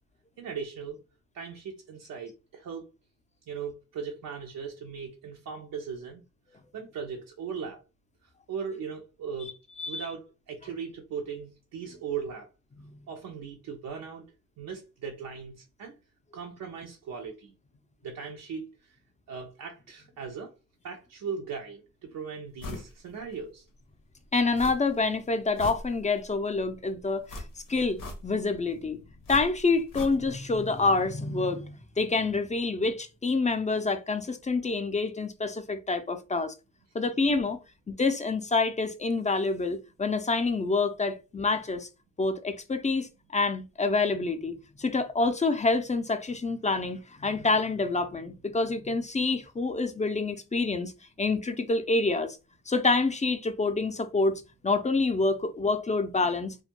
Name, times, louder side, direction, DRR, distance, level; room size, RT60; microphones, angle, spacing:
voice 1, 0.4-1.0 1.3-2.9 3.5-6.2 6.7-7.8 8.5-9.5 9.9-12.5 13.1-14.2 14.6-15.9 16.3-17.5 18.0-19.0 19.3-20.5 20.8-23.6, right 6 dB, 90° right, 0.5 m, -38 dB
sound 1, 22.6-22.9 23.3-23.4 24.5-25.1 25.4-26.3 27.3-28.5 29.2-30.5 30.8-30.9, left 2 dB, 85° left, 0.7 m, -40 dB
voice 2, 24.3-27.4 27.7-29.0 29.3-36.5 36.9-37.6 37.9-41.9 42.2-50.9 51.2-52.4 52.7-56.6, left 3 dB, 20° left, 0.4 m, -27 dB
2.2 x 2.1 x 2.8 m
cardioid pair, 55°, 33 cm